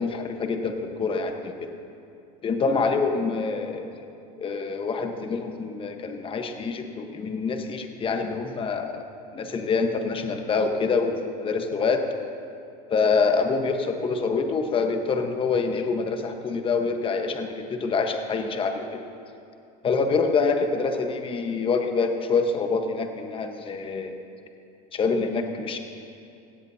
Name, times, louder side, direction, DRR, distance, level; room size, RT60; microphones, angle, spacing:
voice 1, 0.0-1.7 2.4-3.9 4.4-9.1 9.3-12.0 12.9-18.8 19.8-24.1 24.9-25.8, left 4 dB, 25° left, 5 dB, 1.3 m, -26 dB
17.0 x 16.0 x 2.9 m, 2.6 s
hypercardioid pair, 105°, 21 cm